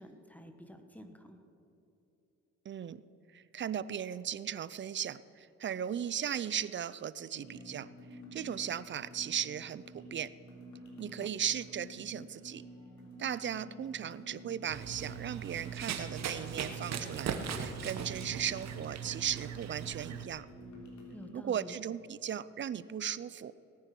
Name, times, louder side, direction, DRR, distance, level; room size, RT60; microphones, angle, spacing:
voice 1, 0.0-1.4 11.2-11.3 21.1-21.7, equal, 5° left, 7 dB, 1.3 m, -50 dB
voice 2, 2.7-3.0 3.3-7.9 8.3-10.3 11.0-12.6 13.2-20.5 21.3-23.5, right 9 dB, 40° right, 17 dB, 0.5 m, -37 dB
sound 1, 7.3-21.3, equal, 70° left, 3.4 m, -51 dB
Run, 14.7-20.2, right 7 dB, 60° right, 1.2 m, -39 dB
18.0 x 9.7 x 6.0 m, 3.0 s
cardioid pair, 90°, 30 cm